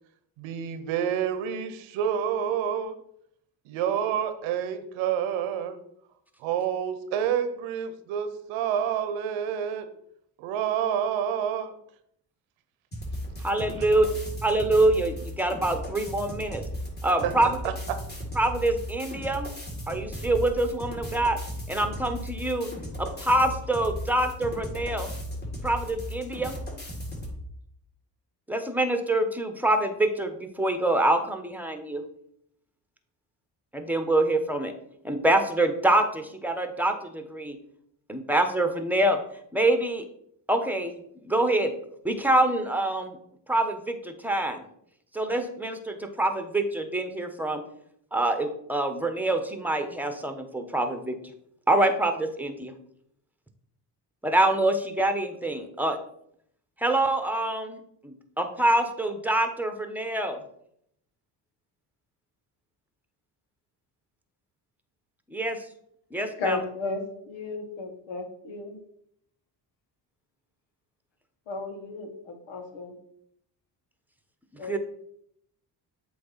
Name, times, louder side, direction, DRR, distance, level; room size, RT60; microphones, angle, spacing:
voice 1, 0.4-3.0 3.6-5.8 6.4-9.9 10.4-11.7 13.8-13.9 17.2-17.3 17.6-18.0, right 8 dB, 90° right, 0.9 m, -28 dB
sound 1, 12.9-27.4, equal, 20° left, 2.7 m, -36 dB
voice 2, 13.4-14.1 14.4-16.6 17.0-17.6 18.4-19.5 19.9-21.4 21.7-22.7 23.0-25.1 25.6-26.5 28.5-32.0 33.7-34.7 35.0-37.6 38.1-39.2 39.5-40.0 40.5-41.7 42.0-43.2 43.5-44.6 45.1-47.6 48.1-51.2 51.7-52.7 54.2-56.0 56.8-60.4 65.3-65.6 66.1-66.6 74.6-74.8, right 1 dB, 5° right, 1.1 m, -25 dB
voice 3, 66.4-68.8 71.5-72.9 74.6-74.8, left 3 dB, 80° left, 1.4 m, -34 dB
7.7 x 3.1 x 5.7 m
supercardioid pair, 60°, 46 cm